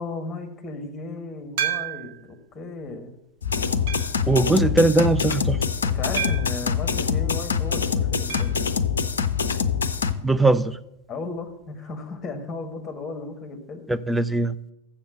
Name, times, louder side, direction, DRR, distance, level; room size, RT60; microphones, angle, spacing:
voice 1, 0.0-3.1 5.8-8.6 11.1-13.8, left 3 dB, 20° left, 6 dB, 1.6 m, -35 dB
sound 1, 1.6-2.3 2.9-3.0 3.9-4.3 6.2-6.6 8.3-8.6 8.9-9.0 9.2-9.3 11.3-11.4, right 9 dB, 50° right, 1.1 m, -30 dB
sound 2, 3.4-10.1, left 6 dB, 70° left, 0.5 m, -24 dB
voice 2, 4.3-5.6 10.2-10.8 13.9-14.6, right 2 dB, 5° right, 12 dB, 0.4 m, -20 dB
7.2 x 7.0 x 7.5 m, 0.86 s
figure-of-eight pair, 90°, 0 cm